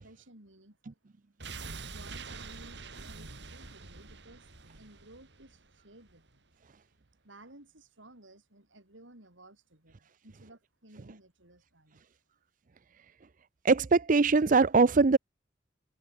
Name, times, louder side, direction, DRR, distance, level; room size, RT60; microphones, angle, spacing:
voice 1, 0.0-1.0 1.8-6.5 7.2-12.0, right 1 dB, 90° right, 6.3 m, -56 dB
sound 1, 1.4-6.4 6.7-6.8, right 4 dB, 65° right, 2.5 m, -45 dB
voice 2, 13.6-15.2, right 4 dB, 45° right, 0.5 m, -22 dB
head